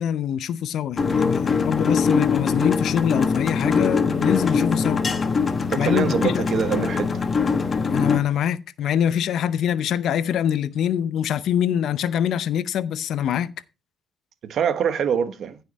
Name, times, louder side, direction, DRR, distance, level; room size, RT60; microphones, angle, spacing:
voice 1, 0.0-5.1 5.8-6.4 7.9-13.5, left 9 dB, 75° left, 0.7 m, -24 dB
sound 1, 1.0-8.2, left 5 dB, 35° left, 1.3 m, -22 dB
voice 2, 5.7-7.2 14.4-15.6, right 8 dB, 65° right, 1.2 m, -24 dB
14.5 x 5.7 x 4.2 m
cardioid pair, 90°, 0 cm